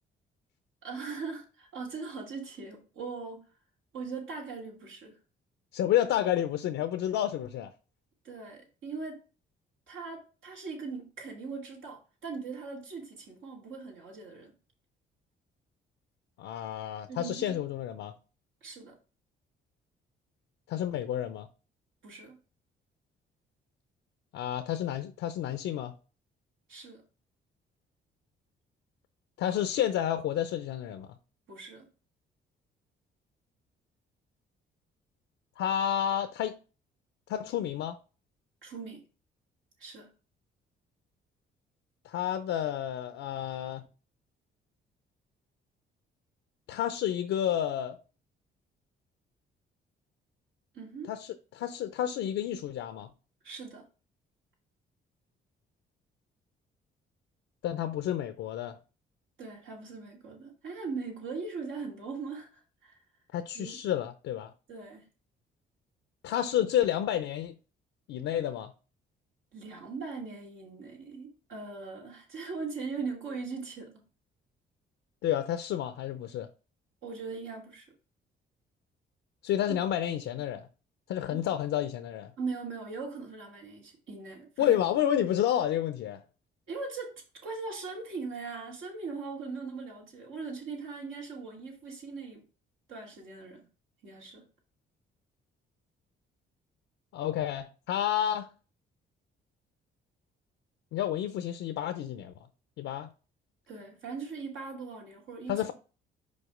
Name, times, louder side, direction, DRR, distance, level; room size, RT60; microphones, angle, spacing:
voice 1, 0.8-3.4 3.9-5.2 8.2-9.2 9.9-14.6 17.1-17.6 18.6-19.0 22.0-22.4 26.7-27.0 31.5-31.9 38.6-39.0 39.8-40.2 50.7-51.1 53.4-53.8 59.4-63.0 63.5-63.8 64.7-65.1 69.5-74.1 77.0-77.9 79.7-79.8 81.3-81.4 82.4-84.8 86.7-92.4 92.9-93.7 94.0-94.5 103.7-105.6, right 4 dB, 80° right, 2.5 m, -40 dB
voice 2, 5.7-7.7 16.4-18.1 20.7-21.5 24.3-25.9 29.4-31.1 35.6-36.6 37.3-38.0 42.0-43.9 46.7-48.0 51.1-53.1 57.6-58.8 63.3-64.5 66.2-67.5 68.1-68.7 75.2-76.5 79.4-80.7 81.1-82.3 84.6-86.2 97.1-98.5 100.9-102.3 102.8-103.1 105.5-105.7, left 11 dB, 85° left, 0.6 m, -30 dB
5.3 x 4.2 x 4.9 m
cardioid pair, 90°, 20 cm